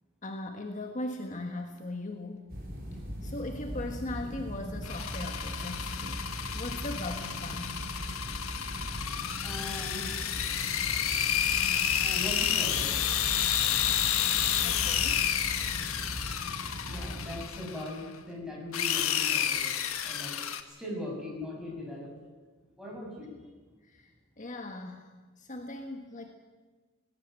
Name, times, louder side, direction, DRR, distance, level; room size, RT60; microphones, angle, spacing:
voice 1, 0.2-2.5 3.2-7.8 14.6-15.3 23.8-25.1 25.4-26.3, left 2 dB, 35° left, 3 dB, 1.6 m, -39 dB
sound 1, 2.5-17.4, equal, 45° right, 4.8 m, -39 dB
sound 2, 4.8-18.0 18.7-20.6, left 9 dB, 90° left, 1.5 m, -30 dB
voice 2, 9.4-10.1 12.0-13.1 16.8-20.4 20.7-22.1 22.8-23.4, left 1 dB, 5° right, -2 dB, 6.8 m, -40 dB
19.0 x 18.0 x 9.0 m, 1.3 s
head